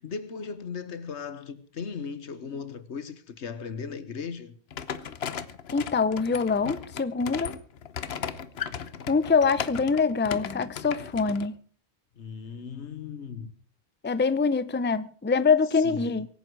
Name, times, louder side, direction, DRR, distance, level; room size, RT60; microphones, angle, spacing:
voice 1, 0.0-4.6 12.1-13.5 15.8-16.2, left 5 dB, 85° left, 1.5 m, -37 dB
sound 1, 4.7-11.5, left 7 dB, 65° left, 1.1 m, -36 dB
voice 2, 5.7-7.5 9.1-11.6 14.0-16.3, left 5 dB, 15° left, 0.5 m, -24 dB
23.5 x 9.8 x 4.7 m
omnidirectional pair, 1.1 m